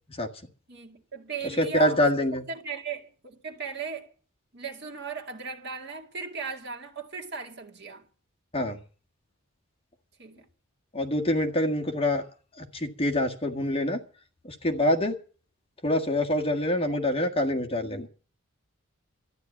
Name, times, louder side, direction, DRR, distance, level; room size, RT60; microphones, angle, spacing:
voice 1, 0.7-2.1 2.5-4.1 4.5-8.1 10.2-10.5, right 5 dB, 50° right, 2.1 m, -37 dB
voice 2, 1.6-2.4 8.5-8.8 10.9-12.2 12.6-14.0 14.4-15.2 15.8-18.1, left 1 dB, 25° left, 1.7 m, -25 dB
13.0 x 10.5 x 8.4 m
head